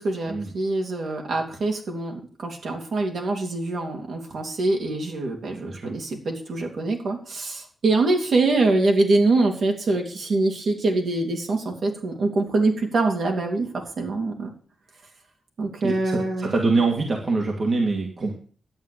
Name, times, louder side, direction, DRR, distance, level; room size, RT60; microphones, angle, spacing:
voice 1, 0.0-13.7 14.0-14.5 15.6-16.5, right 2 dB, 65° right, 1 dB, 3.3 m, -24 dB
voice 2, 15.8-18.3, right 3 dB, 50° right, 1 dB, 2.5 m, -24 dB
11.0 x 8.4 x 6.9 m, 0.42 s
cardioid pair, 100°, 0 cm